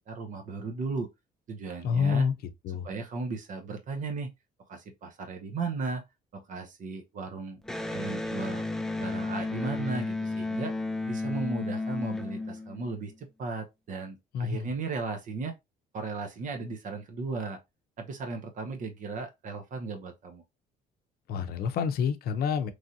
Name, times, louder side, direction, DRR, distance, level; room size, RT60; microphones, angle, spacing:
voice 1, 0.1-1.1 1.5-2.3 2.8-4.3 4.7-6.0 6.3-7.6 7.9-8.6 9.0-10.7 11.1-15.6 15.9-17.6 18.0-20.4, right 4 dB, 50° right, 0.7 m, -36 dB
voice 2, 1.8-2.3 2.6-2.9 14.3-14.7 21.3-22.7, left 7 dB, 65° left, 0.6 m, -28 dB
Electric guitar, 7.6-13.1, left 2 dB, 5° left, 0.4 m, -33 dB
3.1 x 2.5 x 2.7 m
cardioid pair, 110°, 17 cm